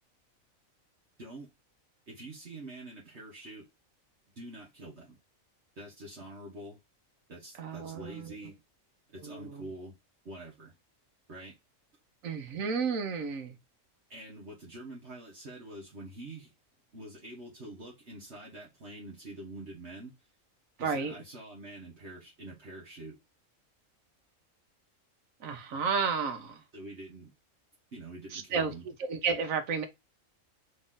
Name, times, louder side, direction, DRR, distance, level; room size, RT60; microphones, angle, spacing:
voice 1, 1.2-1.5 2.1-3.7 4.3-5.2 5.8-6.8 7.3-8.5 9.1-10.0 10.2-10.7 11.3-11.5 14.1-16.5 16.9-20.1 20.8-23.2 26.7-27.3 27.9-28.8, right 1 dB, 55° right, 1.5 m, -46 dB
voice 2, 7.6-8.3 9.2-9.7 12.2-13.6 20.8-21.1 25.4-26.6 28.3-28.7 29.0-29.9, right 5 dB, 80° right, 1.3 m, -32 dB
4.1 x 3.2 x 3.7 m
omnidirectional pair, 1.4 m